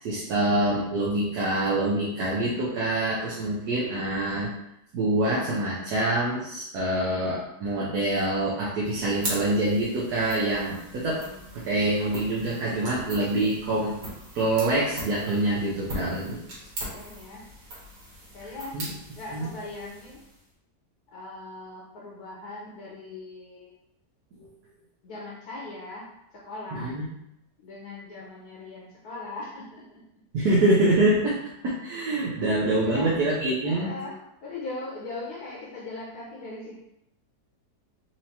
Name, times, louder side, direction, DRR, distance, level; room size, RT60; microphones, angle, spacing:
voice 1, 0.0-4.5 4.9-11.2 11.5-13.9 14.3-16.4 18.7-18.8 19.3-19.5 24.4-24.5 26.7-27.0 30.3-33.9, right 1 dB, 70° right, -5 dB, 1.2 m, -25 dB
sound 1, 8.8-20.5, right 1 dB, 90° right, 2.0 m, -40 dB
voice 2, 11.2-11.9 16.9-17.4 18.3-18.8 19.1-20.2 21.1-23.7 25.0-27.0 27.6-30.0 30.4-30.5 32.7-33.1 33.6-36.8, left 2 dB, 65° left, -4 dB, 1.3 m, -40 dB
4.5 x 2.9 x 2.8 m, 0.82 s
omnidirectional pair, 1.8 m